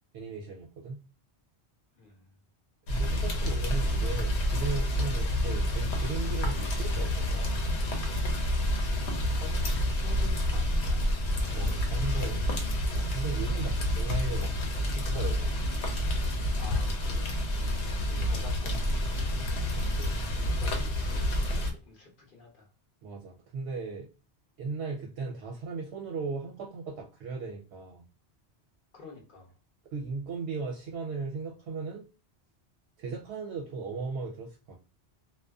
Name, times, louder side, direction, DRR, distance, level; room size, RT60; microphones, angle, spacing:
voice 1, 0.1-1.0 2.9-7.6 11.5-12.5 12.9-14.5 14.8-15.7 18.1-18.4 19.7-20.1 23.0-24.1 24.6-28.0 29.9-32.1 33.0-34.8, right 4 dB, 70° right, 1 dB, 0.8 m, -37 dB
voice 2, 1.9-2.3 8.8-11.1 16.6-17.7 18.2-18.9 19.6-22.7 28.9-29.5, left 4 dB, 55° left, -1 dB, 0.9 m, -50 dB
Rain, 2.9-21.7, left 1 dB, 80° left, 0.9 m, -29 dB
2.4 x 2.3 x 2.3 m, 0.32 s
omnidirectional pair, 1.1 m